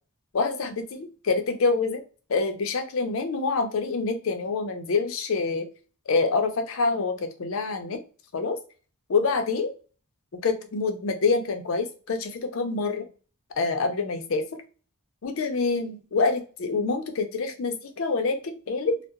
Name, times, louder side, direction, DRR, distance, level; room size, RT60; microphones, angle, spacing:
voice 1, 0.3-2.0 2.3-5.7 6.1-8.0 8.3-8.6 9.1-9.7 10.3-13.1 13.6-14.5 15.2-19.0, left 4 dB, 60° left, 6 dB, 0.5 m, -26 dB
2.7 x 2.0 x 2.3 m, 0.37 s
head